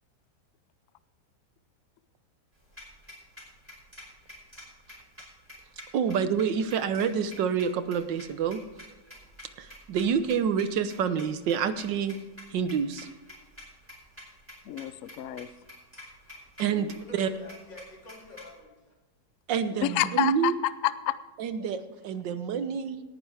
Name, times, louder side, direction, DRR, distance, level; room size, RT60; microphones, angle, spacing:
sound 1, 2.6-18.6, left 1 dB, 5° right, 4.7 m, -49 dB
voice 1, 5.9-8.6 9.6-12.2 12.5-13.1 16.6-16.9 17.1-17.3 19.5-20.5 21.4-23.0, right 7 dB, 90° right, 11 dB, 1.6 m, -27 dB
voice 2, 14.6-15.5 19.8-21.2, left 13 dB, 65° left, 15 dB, 0.8 m, -28 dB
voice 3, 16.2-19.0, left 1 dB, 85° left, -2 dB, 3.9 m, -48 dB
17.5 x 10.0 x 3.4 m, 1.2 s
omnidirectional pair, 1.9 m